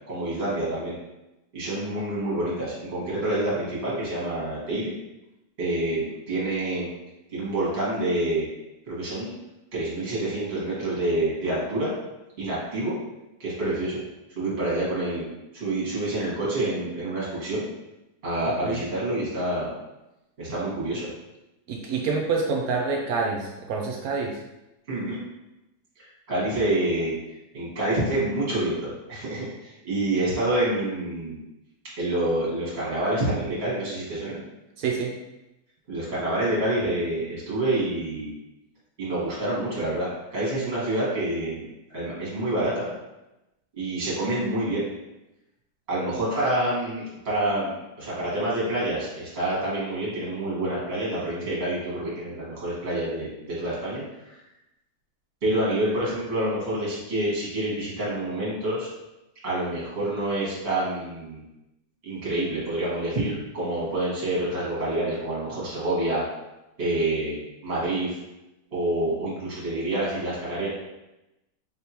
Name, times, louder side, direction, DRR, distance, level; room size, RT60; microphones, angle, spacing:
voice 1, 0.1-0.9 1.5-4.9 5.6-6.9 7.3-8.5 8.9-9.3 9.7-11.9 12.4-13.0 13.4-14.0 14.4-17.7 18.2-19.7 20.4-21.1 24.9-25.2 26.3-27.2 27.5-31.4 32.0-34.4 35.9-38.3 39.0-41.7 41.9-42.9 43.8-44.9 45.9-54.4 55.4-58.9 59.4-61.4 62.0-66.2 66.8-67.3 67.6-68.1 68.7-70.7, right 1 dB, 40° right, -7 dB, 1.8 m, -27 dB
voice 2, 21.7-24.4 34.8-35.1, right 4 dB, 70° right, 0 dB, 1.0 m, -27 dB
4.2 x 3.4 x 2.9 m, 0.95 s
omnidirectional pair, 1.8 m